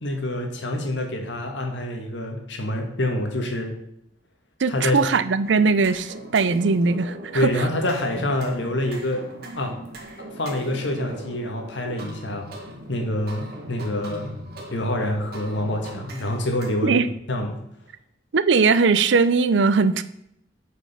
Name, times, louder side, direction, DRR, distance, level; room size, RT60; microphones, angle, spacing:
voice 1, 0.0-3.7 4.7-5.0 7.3-9.2 9.6-9.7 10.4-12.5 12.9-14.3 14.7-17.0 17.3-17.6, left 1 dB, 85° left, 3 dB, 1.7 m, -26 dB
voice 2, 4.6-7.5 16.8-17.1 18.3-20.0, right 4 dB, 85° right, 14 dB, 0.5 m, -20 dB
sound 1, 5.4-16.7, right 1 dB, 60° right, 2.0 m, -40 dB
8.7 x 5.3 x 5.6 m, 0.76 s
head